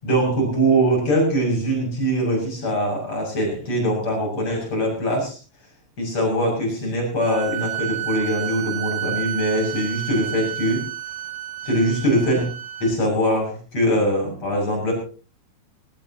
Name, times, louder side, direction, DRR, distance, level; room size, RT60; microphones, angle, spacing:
voice 1, 0.0-5.4 6.0-10.8 11.6-12.5 12.8-14.9, right 1 dB, 30° left, 0 dB, 7.8 m, -22 dB
sound 1, 7.2-12.9, right 12 dB, 70° right, 5.2 m, -31 dB
20.5 x 19.0 x 3.0 m, 0.38 s
omnidirectional pair, 5.9 m